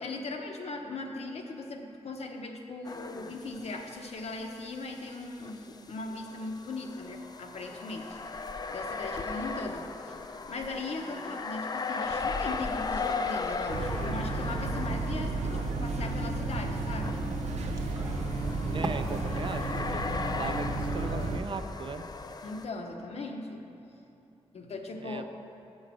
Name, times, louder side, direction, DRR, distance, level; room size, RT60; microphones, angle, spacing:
voice 1, 0.0-8.2 8.7-10.1 10.5-17.2 22.4-23.6 24.5-25.3, left 3 dB, 65° left, 3 dB, 0.9 m, -39 dB
sound 1, 2.8-4.0 4.3-4.4 5.4-22.7, left 4 dB, 35° left, 0.4 m, -37 dB
sound 2, 12.3-18.9, right 2 dB, 30° right, 1.0 m, -46 dB
sound 3, 13.7-21.4, right 3 dB, 85° right, 0.6 m, -32 dB
voice 2, 18.7-20.0 20.3-22.0 25.0-25.3, right 4 dB, 45° right, 8 dB, 0.5 m, -38 dB
7.8 x 6.4 x 6.1 m, 2.8 s
cardioid pair, 85°, 11 cm